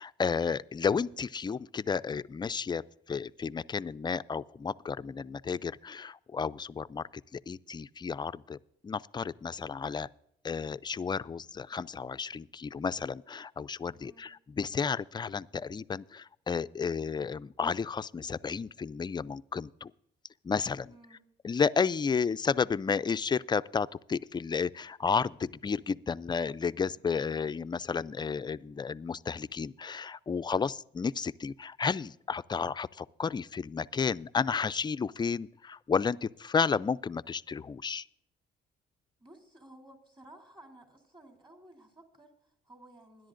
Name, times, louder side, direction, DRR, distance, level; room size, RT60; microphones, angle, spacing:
voice 1, 0.0-2.8 3.1-7.0 7.3-8.6 8.8-10.1 10.4-14.3 14.6-19.9 20.4-20.9 21.4-38.0, left 5 dB, 20° left, 0.3 m, -32 dB
voice 2, 13.9-14.3 20.9-21.2 39.2-43.3, right 1 dB, 25° right, 3.3 m, -55 dB
20.5 x 11.0 x 2.5 m
cardioid pair, 90°, 20 cm